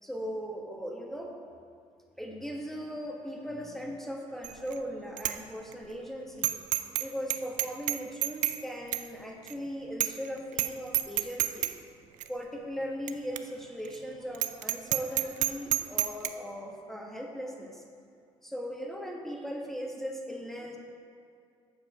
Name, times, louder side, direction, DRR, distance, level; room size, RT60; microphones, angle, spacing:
voice 1, 0.0-1.4 2.2-6.5 7.0-11.7 12.3-17.8 18.4-20.8, equal, ahead, 0 dB, 1.3 m, -38 dB
Bicycle bell, 4.4-4.8 5.2-5.3 5.7-5.8 6.4-7.0 7.3-8.6 8.9-9.0 9.5-9.6 10.0-10.3 10.5-10.7 10.9-11.7 12.2-12.3 13.1-13.2 13.4-13.5 13.8-14.0 14.3-16.3, right 14 dB, 80° right, 0.4 m, -28 dB
7.5 x 7.3 x 4.9 m, 2.3 s
cardioid pair, 85°, 13 cm